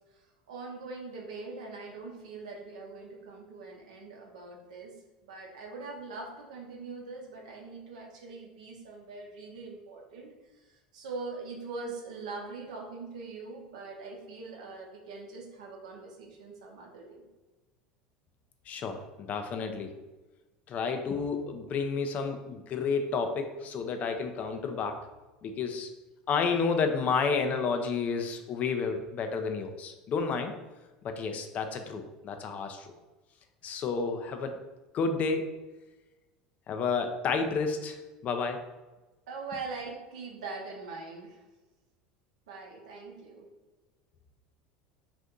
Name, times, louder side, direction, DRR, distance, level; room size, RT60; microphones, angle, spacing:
voice 1, 0.1-4.9 5.2-17.3 39.3-41.4 42.5-43.5, right 3 dB, 80° right, 0 dB, 0.7 m, -42 dB
voice 2, 18.7-19.9 20.7-25.0 25.4-25.9 26.3-30.5 31.0-32.9 33.6-34.6 34.9-35.5 36.7-38.7, left 5 dB, 45° left, 6 dB, 0.4 m, -31 dB
2.6 x 2.5 x 3.6 m, 1.1 s
hypercardioid pair, 80°, 4 cm